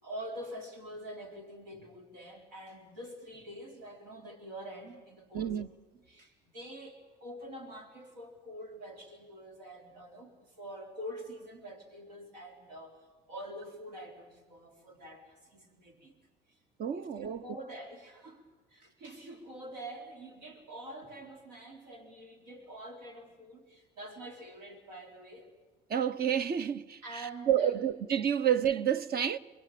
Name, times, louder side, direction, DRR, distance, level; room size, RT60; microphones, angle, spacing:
voice 1, 0.0-5.6 6.1-13.0 13.3-16.2 16.5-16.6 16.9-18.4 18.7-25.5 27.0-27.9, right 1 dB, 85° right, 3.9 m, -46 dB
voice 2, 5.3-5.7 16.8-17.4 25.9-29.4, right 9 dB, 45° right, 1.0 m, -29 dB
25.5 x 24.0 x 8.6 m
hypercardioid pair, 65°, 21 cm